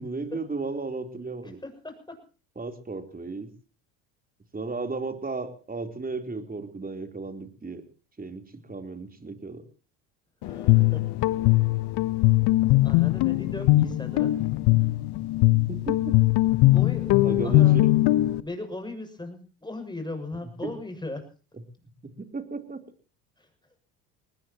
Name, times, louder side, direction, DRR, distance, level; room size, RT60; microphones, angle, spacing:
voice 1, 0.0-1.6 2.6-3.5 4.5-7.8 8.2-9.6 15.5-16.1 17.2-17.8 22.0-22.8, right 3 dB, 20° right, 7 dB, 3.6 m, -34 dB
voice 2, 1.4-2.2 10.4-11.1 12.7-14.4 14.8-14.9 16.7-17.8 18.4-21.3 23.4-23.5, left 2 dB, 10° left, 7 dB, 7.1 m, -38 dB
Guitar, 10.4-18.4, left 18 dB, 65° left, 1.2 m, -21 dB
23.0 x 19.5 x 3.0 m, 0.37 s
hypercardioid pair, 70°, 44 cm